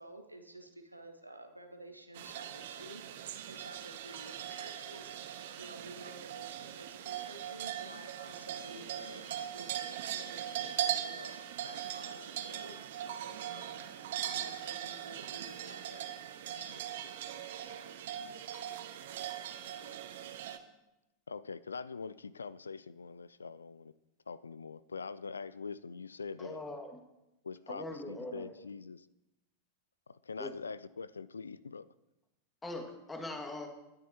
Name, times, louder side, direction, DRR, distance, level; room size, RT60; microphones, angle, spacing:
voice 1, 0.0-3.0 3.5-5.2 5.6-12.8 13.1-16.1 16.5-17.3, right 1 dB, 85° right, 5 dB, 1.3 m, -52 dB
sound 1, 2.1-20.6, right 11 dB, 55° right, 0.9 m, -40 dB
voice 2, 21.3-23.9 24.3-26.6 27.4-29.0 30.1-31.9, left 5 dB, 75° left, 19 dB, 0.4 m, -43 dB
voice 3, 26.4-27.0 27.7-28.5 30.4-30.5 32.6-33.7, left 2 dB, 15° left, 4 dB, 2.2 m, -41 dB
20.5 x 10.5 x 3.0 m, 0.93 s
figure-of-eight pair, 90°, 0 cm